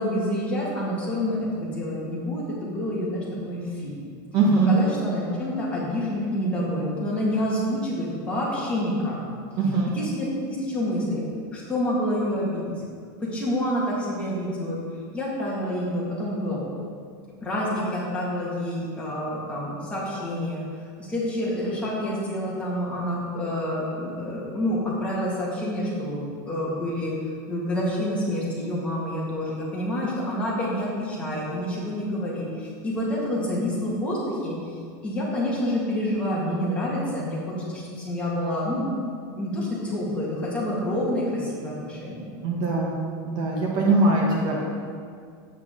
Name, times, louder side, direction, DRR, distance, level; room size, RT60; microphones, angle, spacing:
voice 1, 0.0-3.9 4.7-9.2 9.9-11.2 11.5-12.8 13.2-14.8 15.1-16.6 17.4-20.6 21.0-27.1 27.5-34.7 35.0-38.9 39.4-42.2, left 1 dB, 10° left, -7 dB, 1.9 m, -28 dB
voice 2, 4.3-4.7 9.6-9.9 42.4-43.0 43.2-44.6, right 3 dB, 35° right, -2 dB, 1.2 m, -21 dB
8.3 x 8.1 x 3.8 m, 2.1 s
supercardioid pair, 170°, 12 cm